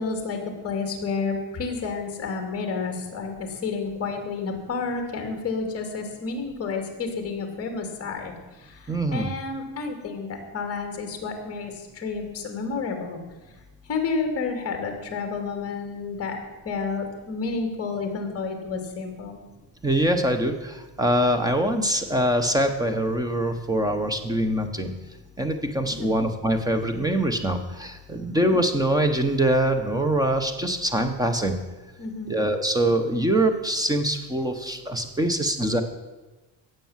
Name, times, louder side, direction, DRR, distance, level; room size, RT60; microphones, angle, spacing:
voice 1, 0.0-8.3 8.6-13.2 13.9-19.4 25.9-26.2 28.1-28.4 32.0-32.4, left 4 dB, 30° left, 4 dB, 2.6 m, -30 dB
voice 2, 8.9-9.3 19.8-24.9 25.4-31.6 32.3-35.8, right 1 dB, 10° right, 7 dB, 1.0 m, -24 dB
17.0 x 7.0 x 7.4 m, 1.2 s
cardioid pair, 175°, 44 cm